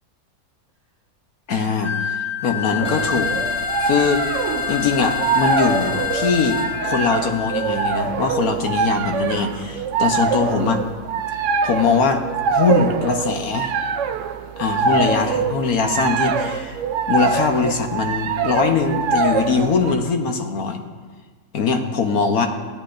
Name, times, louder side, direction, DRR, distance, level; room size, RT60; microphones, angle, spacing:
voice 1, 1.5-3.3 3.8-4.2 4.7-10.8 11.6-12.2 12.5-13.7 14.6-16.8 17.1-20.8 21.5-22.5, left 5 dB, 70° left, 5 dB, 1.3 m, -21 dB
Wind instrument woodwind instrument, 1.8-8.0, left 11 dB, 30° right, 0.9 m, -28 dB
sound 1, 2.8-6.7, left 1 dB, 5° left, 1.0 m, -31 dB
sound 2, 2.8-19.9, right 5 dB, 70° right, 0.7 m, -24 dB
15.5 x 9.9 x 2.5 m, 1.4 s
omnidirectional pair, 1.7 m